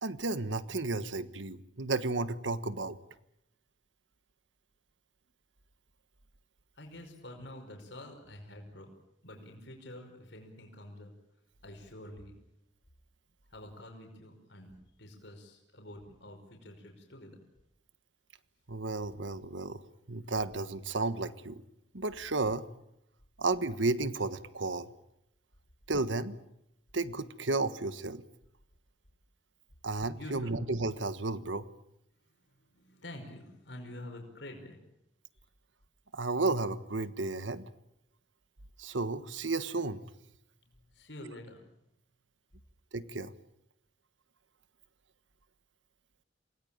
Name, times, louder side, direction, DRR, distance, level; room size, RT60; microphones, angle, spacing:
voice 1, 0.0-3.0 18.7-19.8 20.1-21.6 21.9-22.6 23.4-24.9 25.9-26.4 26.9-28.2 29.8-31.7 36.1-37.7 38.8-40.0 42.9-43.3, right 3 dB, 85° right, 13 dB, 1.4 m, -33 dB
voice 2, 6.8-8.9 9.2-11.1 11.6-12.3 13.5-14.7 15.0-17.4 30.2-30.5 32.7-34.8 40.9-41.6, left 1 dB, 70° left, 3 dB, 5.3 m, -47 dB
27.5 x 19.5 x 8.9 m, 0.80 s
head